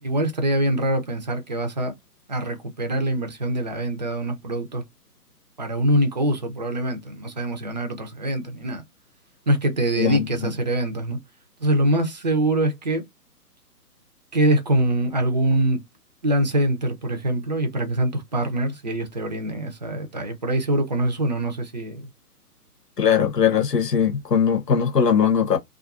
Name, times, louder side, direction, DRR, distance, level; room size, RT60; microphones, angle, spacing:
voice 1, 0.0-1.9 2.3-4.8 5.6-8.8 9.5-11.2 11.6-13.0 14.3-15.8 16.2-22.1, right 1 dB, 30° right, 0.4 m, -24 dB
voice 2, 10.0-10.5 23.0-25.6, left 7 dB, 90° left, 0.9 m, -20 dB
2.4 x 2.3 x 2.4 m
figure-of-eight pair, 135°, 47 cm